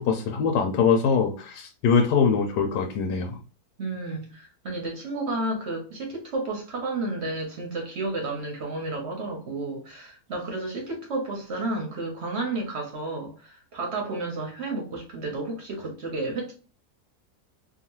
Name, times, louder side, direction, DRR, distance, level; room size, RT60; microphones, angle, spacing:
voice 1, 0.0-3.4, left 6 dB, 85° left, 1.2 m, -23 dB
voice 2, 3.8-16.5, right 2 dB, 55° right, 0.8 m, -32 dB
2.8 x 2.4 x 2.8 m
omnidirectional pair, 1.7 m